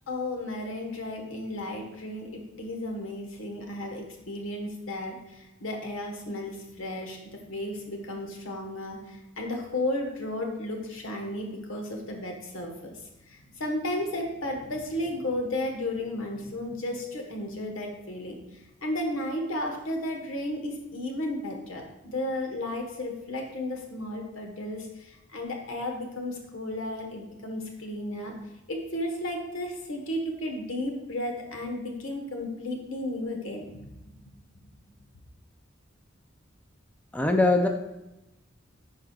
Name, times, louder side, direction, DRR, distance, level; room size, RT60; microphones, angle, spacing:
voice 1, 0.1-13.0 13.3-18.4 18.8-28.3 28.7-34.2, left 1 dB, 85° left, 2 dB, 1.3 m, -34 dB
voice 2, 37.1-37.7, left 2 dB, 5° left, 3 dB, 0.4 m, -21 dB
10.0 x 4.8 x 2.4 m, 0.95 s
head